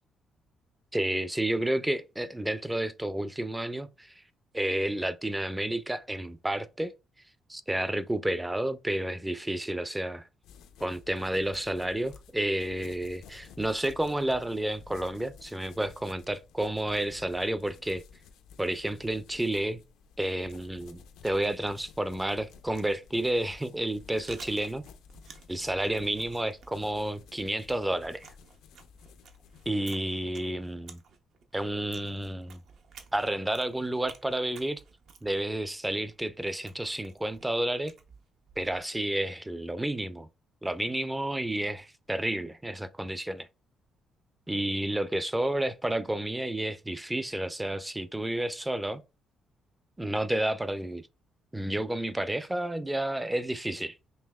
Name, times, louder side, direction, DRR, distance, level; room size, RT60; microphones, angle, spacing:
voice 1, 0.9-4.2 4.5-6.9 7.5-10.2 10.8-18.0 18.6-19.8 20.2-24.8 25.5-28.3 29.7-31.0 31.5-32.6 33.1-34.8 35.2-37.9 38.6-40.3 40.6-43.5 44.5-49.0 50.0-51.1 51.5-54.0, right 1 dB, 10° right, 0.4 m, -31 dB
sound 1, 10.4-29.8, left 6 dB, 90° left, 0.4 m, -53 dB
Chewing mastication, 23.9-38.9, right 5 dB, 70° right, 0.6 m, -54 dB
5.3 x 2.9 x 2.3 m
cardioid pair, 90°, 0 cm